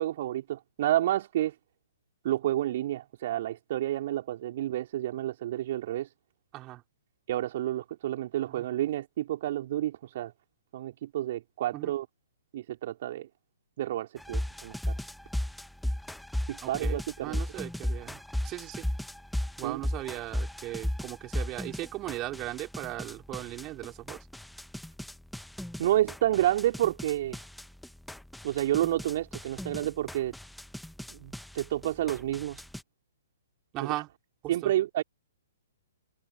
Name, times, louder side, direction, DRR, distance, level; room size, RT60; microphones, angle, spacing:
voice 1, 0.0-1.5 2.2-6.1 7.3-10.3 10.7-12.1 12.5-13.3 13.8-14.9 16.5-17.4 19.6-19.8 25.8-27.4 28.4-30.3 31.1-32.6 33.8-33.9 34.5-35.0, right 13 dB, 45° right, 4.3 m, -30 dB
sound 1, 14.2-32.8, left 1 dB, ahead, 1.4 m, -36 dB
voice 2, 16.6-18.9 19.6-24.2 33.7-34.1 34.4-34.7, right 17 dB, 25° right, 5.4 m, -38 dB
figure-of-eight pair, 120°, 0 cm